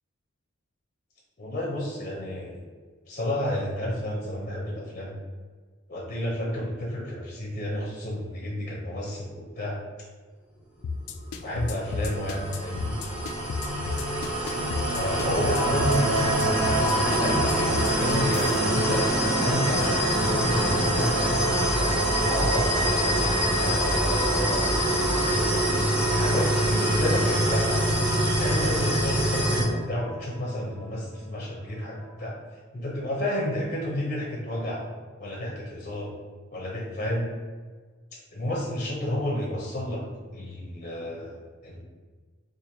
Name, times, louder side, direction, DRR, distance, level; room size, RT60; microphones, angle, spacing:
voice 1, 1.4-2.6 3.1-5.1 5.9-9.8 11.4-13.0 14.9-16.5 17.1-21.1 21.7-23.2 23.6-24.7 25.1-27.8 28.4-32.3 32.7-34.8 35.2-36.1 36.5-37.3 38.1-40.0 40.3-41.8, left 1 dB, 35° left, -3 dB, 0.6 m, -31 dB
sound 1, 10.8-18.6, left 4 dB, 70° left, 0.3 m, -32 dB
sound 2, 11.6-29.6, right 1 dB, 5° right, 0.7 m, -25 dB
sound 3, 15.5-32.1, right 1 dB, 70° right, 1.1 m, -33 dB
4.3 x 2.5 x 2.7 m, 1.5 s
head